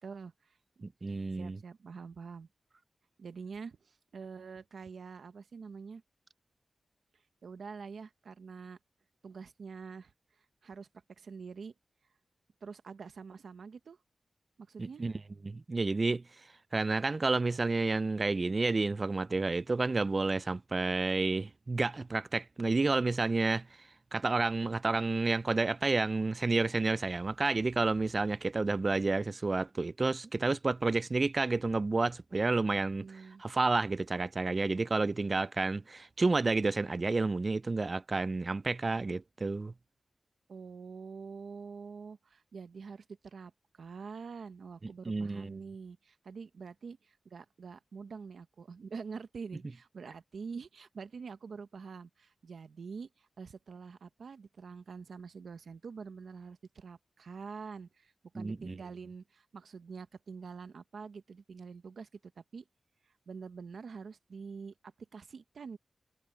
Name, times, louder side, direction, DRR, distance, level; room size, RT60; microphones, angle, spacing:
voice 1, 0.0-0.8 1.4-2.5 3.2-6.0 7.4-8.8 9.2-11.7 12.6-14.0 14.6-15.0 33.0-33.4 40.5-62.6 63.0-65.8, right 5 dB, 85° right, 1.0 m, -46 dB
voice 2, 0.8-1.6 14.8-15.1 15.4-16.2 16.7-23.7 24.1-39.7 45.1-45.6 58.3-58.8, right 3 dB, 40° right, 0.3 m, -30 dB
wide cardioid pair, 85°, 0 cm